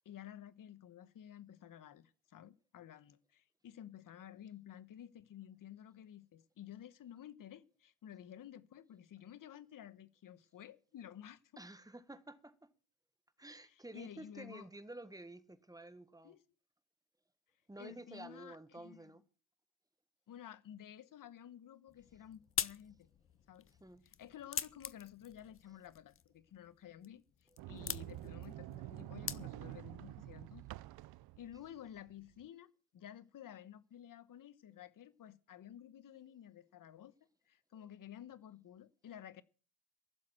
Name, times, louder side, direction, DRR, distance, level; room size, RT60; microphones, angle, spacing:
voice 1, 0.0-11.4 13.7-14.7 16.2-16.4 17.8-19.1 20.3-23.1 23.5-23.7 24.0-27.2 27.7-30.6 31.4-37.1 37.5-39.4, left 10 dB, 50° left, 1.2 m, -53 dB
voice 2, 11.6-12.7 13.4-16.3 17.7-19.2 23.8-24.0 27.8-28.0, right 2 dB, 10° right, 1.5 m, -51 dB
sound 1, 21.9-29.9, left 8 dB, 30° left, 0.8 m, -45 dB
Sliding door, 27.6-32.4, right 17 dB, 60° right, 0.6 m, -48 dB
15.5 x 7.5 x 7.6 m
supercardioid pair, 80°, 42 cm